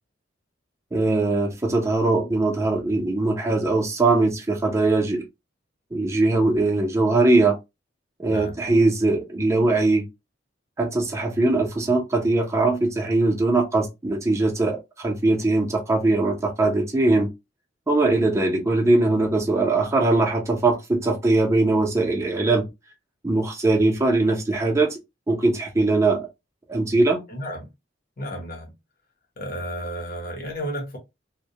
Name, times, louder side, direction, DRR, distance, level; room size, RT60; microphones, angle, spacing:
voice 1, 0.9-5.3 5.9-7.6 8.2-10.0 10.8-17.3 17.9-22.7 23.2-25.0 25.3-26.3 26.7-27.2, right 2 dB, 15° right, 0.6 m, -21 dB
voice 2, 8.3-8.6 27.3-27.7 28.2-28.8 29.4-31.0, equal, 50° left, 0.9 m, -32 dB
2.1 x 2.1 x 2.7 m
head